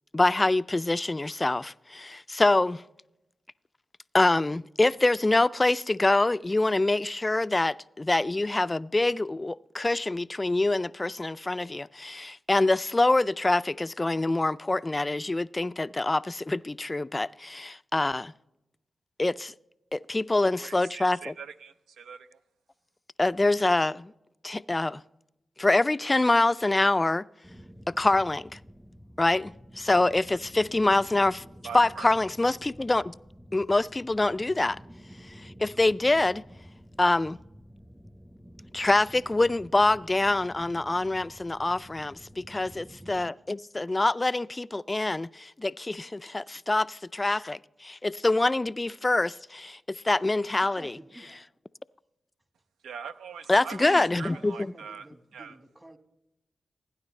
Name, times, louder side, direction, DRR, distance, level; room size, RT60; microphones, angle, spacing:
voice 1, 0.1-2.8 4.1-18.3 19.2-19.5 19.9-21.3 23.2-24.1 24.4-25.0 25.6-27.3 28.0-28.6 29.2-31.4 31.7-33.1 33.5-34.8 35.4-36.4 37.0-37.4 38.7-50.9 53.5-54.5, left 2 dB, 30° left, 0.3 m, -25 dB
voice 2, 20.6-22.4 31.6-32.2 52.8-55.6, right 6 dB, 90° right, 0.5 m, -42 dB
sound 1, 27.4-43.3, equal, 5° right, 0.7 m, -50 dB
voice 3, 43.0-43.4 46.2-46.3 50.6-51.5 53.8-56.0, right 1 dB, 25° right, 1.4 m, -49 dB
17.5 x 9.6 x 3.2 m
supercardioid pair, 45°, 0 cm